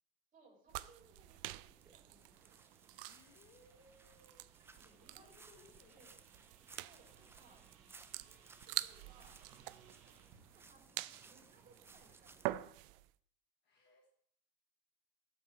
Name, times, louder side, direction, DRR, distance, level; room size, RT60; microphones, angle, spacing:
voice 1, 0.3-2.6 4.7-6.2 6.7-7.6 8.2-8.4 8.8-9.4 9.8-12.9, right 3 dB, 25° right, 0 dB, 3.4 m, -66 dB
sound 1, 0.7-13.1, right 18 dB, 65° right, 0.5 m, -47 dB
sound 2, 1.0-12.6, right 4 dB, 10° right, 0.4 m, -62 dB
sound 3, 1.7-10.5, right 7 dB, 50° right, 1.8 m, -69 dB
voice 2, 2.8-4.9 5.2-6.1 13.6-14.1, left 3 dB, 35° left, 2 dB, 1.3 m, -66 dB
14.0 x 6.3 x 3.2 m, 0.63 s
supercardioid pair, 120°, 30 cm